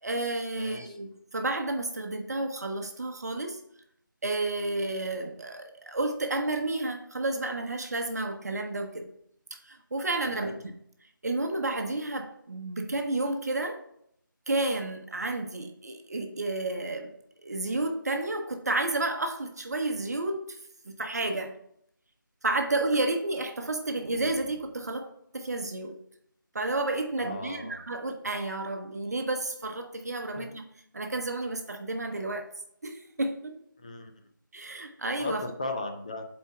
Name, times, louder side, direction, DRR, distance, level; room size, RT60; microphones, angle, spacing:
voice 1, 0.0-3.6 4.2-9.1 9.6-10.7 11.2-13.8 14.5-17.1 17.4-20.6 20.9-21.5 22.4-25.1 25.3-26.0 26.5-30.6 30.9-32.4 32.8-33.6 34.5-35.4, right 2 dB, 50° right, 5 dB, 0.8 m, -31 dB
voice 2, 0.6-1.0 10.3-10.6 27.2-27.8 30.4-30.5 33.8-34.1 35.2-36.3, left 2 dB, 20° left, 5 dB, 0.5 m, -37 dB
7.3 x 4.3 x 4.3 m, 0.70 s
figure-of-eight pair, 170°, 11 cm